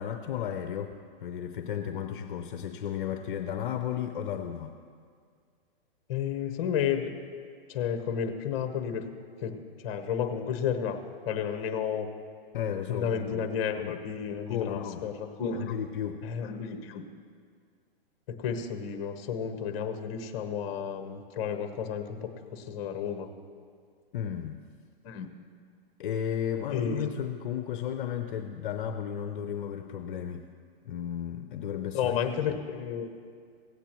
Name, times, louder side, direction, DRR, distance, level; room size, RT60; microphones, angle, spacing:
voice 1, 0.0-4.7 12.5-13.4 13.8-14.0 14.5-15.1 15.5-16.2 24.1-24.6 26.0-30.5 30.8-32.2 32.5-32.6, left 9 dB, 60° left, 7 dB, 0.6 m, -34 dB
voice 2, 6.1-7.1 7.7-9.0 9.4-9.5 9.8-11.0 11.2-12.1 12.9-15.7 16.2-17.0 18.4-23.3 25.0-25.3 26.7-27.1 31.9-33.1, left 7 dB, 35° left, 7 dB, 1.0 m, -32 dB
17.0 x 8.1 x 3.0 m, 2.1 s
hypercardioid pair, 150°, 30 cm